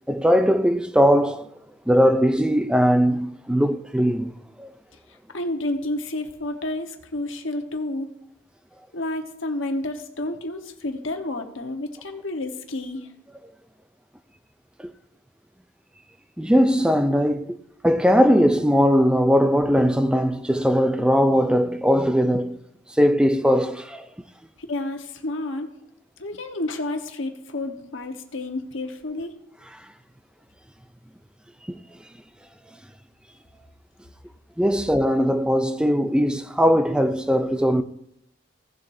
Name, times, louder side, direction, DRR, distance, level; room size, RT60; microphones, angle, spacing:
voice 1, 0.1-1.5 1.9-4.3 4.6-4.7 16.4-17.6 17.8-22.6 23.0-24.1 31.7-31.8 34.6-37.8, equal, 5° right, 0.4 m, -19 dB
voice 2, 5.3-8.1 8.9-13.1 24.7-25.7 26.2-29.3, left 2 dB, 65° left, 1.3 m, -30 dB
17.0 x 7.3 x 2.7 m
head